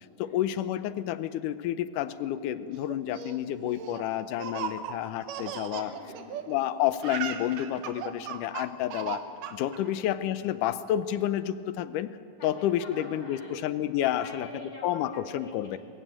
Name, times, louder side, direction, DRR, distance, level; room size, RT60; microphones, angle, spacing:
voice 1, 0.2-5.9 6.5-9.2 9.5-12.1 12.4-14.5 14.8-15.8, left 12 dB, 80° left, 13 dB, 2.3 m, -30 dB
Laughter, 2.9-6.7 6.9-9.8, right 8 dB, 90° right, 2.7 m, -37 dB
voice 2, 5.6-6.4 9.8-10.0 12.4-13.5 14.0-15.8, left 1 dB, 40° left, 0 dB, 5.4 m, -47 dB
22.5 x 15.5 x 9.0 m, 2.4 s
omnidirectional pair, 3.6 m